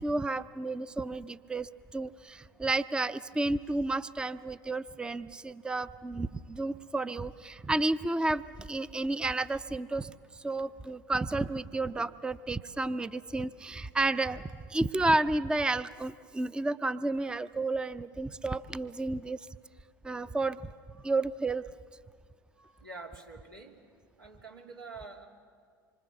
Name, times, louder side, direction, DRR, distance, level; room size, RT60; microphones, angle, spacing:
voice 1, 0.0-19.5 20.0-20.7 21.0-21.6, right 2 dB, 10° right, 15 dB, 0.5 m, -31 dB
voice 2, 22.6-23.8 24.2-25.3, right 3 dB, 90° right, 0 dB, 2.8 m, -47 dB
26.5 x 24.5 x 7.0 m, 2.1 s
hypercardioid pair, 80°, 11 cm